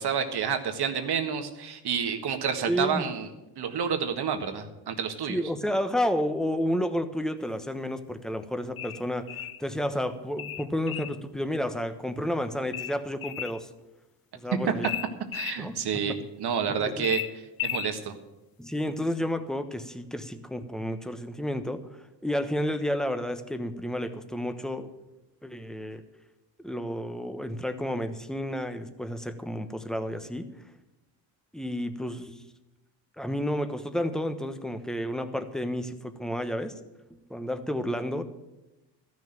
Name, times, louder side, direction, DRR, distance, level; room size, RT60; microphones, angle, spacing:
voice 1, 0.0-3.3 3.6-5.4 15.3-17.2 17.6-18.2, right 7 dB, 60° right, 6 dB, 1.7 m, -29 dB
voice 2, 2.7-3.0 5.3-13.7 14.3-14.9 15.6-16.2 16.8-17.1 18.6-24.9 25.4-26.0 26.6-30.5 31.5-32.4 33.2-36.7 37.1-38.2, equal, ahead, 9 dB, 1.1 m, -31 dB
sound 1, 8.8-9.6 10.4-11.2 12.7-13.6 14.8-15.6 17.0-17.9, left 11 dB, 50° left, 0.8 m, -34 dB
13.5 x 6.4 x 9.0 m, 1.0 s
cardioid pair, 90°, 45 cm